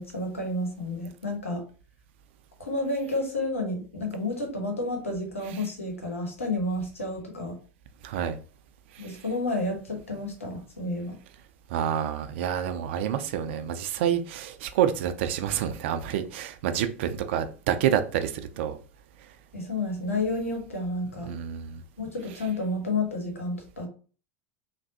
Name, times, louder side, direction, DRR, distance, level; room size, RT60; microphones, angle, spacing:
voice 1, 0.0-1.6 2.6-7.6 9.0-11.2 19.5-21.3 22.0-23.9, left 2 dB, 90° left, 1.0 m, -30 dB
voice 2, 8.0-8.4 8.9-9.0 11.7-18.8 21.3-21.8, right 9 dB, 65° right, 0.4 m, -28 dB
3.3 x 2.2 x 2.8 m
hypercardioid pair, 85°, 7 cm